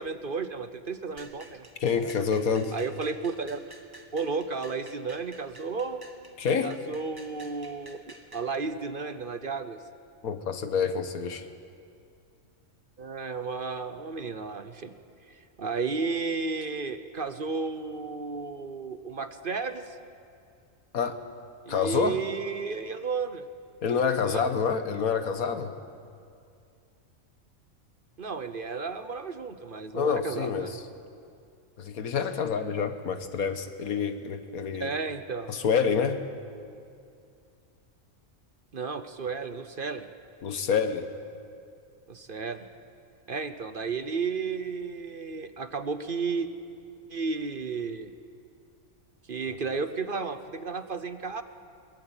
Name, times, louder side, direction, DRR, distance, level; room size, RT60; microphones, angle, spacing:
voice 1, 0.0-1.7 2.7-3.6 4.1-6.0 6.6-8.0 8.3-9.8 13.0-14.9 15.3-20.0 21.7-23.5 24.3-24.4 28.2-30.8 34.8-35.6 38.7-40.1 42.1-42.7 43.3-46.5 47.1-48.1 49.3-51.4, right 4 dB, 45° right, 10 dB, 0.9 m, -33 dB
sound 1, 1.2-8.5, right 1 dB, 15° right, 1.4 m, -51 dB
voice 2, 1.8-2.7 6.4-6.7 10.2-11.5 20.9-21.2 21.7-22.2 23.8-25.7 29.9-30.8 31.8-34.9 35.5-36.3 40.4-41.1 49.5-49.6, left 6 dB, 90° left, 9 dB, 1.7 m, -27 dB
22.0 x 20.0 x 8.9 m, 2.4 s
omnidirectional pair, 1.5 m